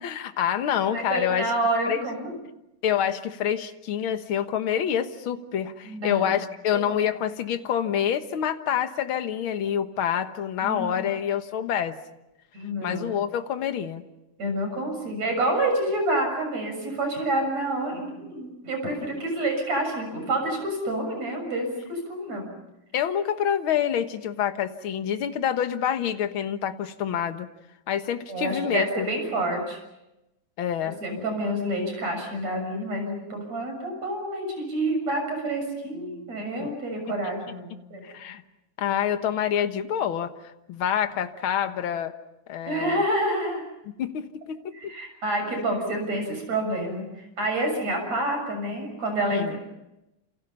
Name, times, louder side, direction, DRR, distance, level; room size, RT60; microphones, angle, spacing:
voice 1, 0.0-1.5 1.9-2.1 2.8-12.0 12.8-14.0 22.9-27.5 27.9-29.1 30.6-31.3 36.6-36.7 38.0-38.4 38.8-40.3 40.7-42.1 42.5-43.0 43.9-44.7 49.3-49.6, left 9 dB, 50° left, 8 dB, 1.8 m, -27 dB
voice 2, 0.9-2.4 5.8-6.3 10.6-10.9 12.5-13.1 14.4-22.5 28.3-29.8 31.0-38.0 42.7-43.6 44.7-47.1 47.4-49.6, right 1 dB, 60° right, 4 dB, 8.0 m, -28 dB
29.0 x 28.5 x 5.7 m, 0.92 s
omnidirectional pair, 3.5 m